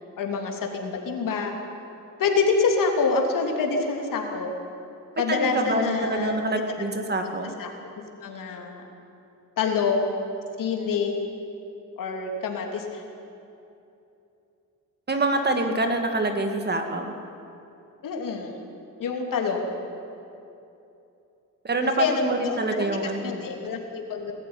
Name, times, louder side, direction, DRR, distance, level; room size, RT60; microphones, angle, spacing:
voice 1, 0.2-1.5 2.2-4.5 5.2-6.4 7.6-7.7 8.2-8.8 9.6-10.2 10.6-11.2 12.0-13.0 18.0-18.6 19.0-19.7 22.0-24.3, left 4 dB, 70° left, 2 dB, 3.1 m, -26 dB
voice 2, 5.3-7.5 15.1-17.1 21.6-23.5, right 2 dB, 30° right, 5 dB, 2.1 m, -26 dB
20.0 x 14.0 x 9.8 m, 2.8 s
cardioid pair, 110°, 34 cm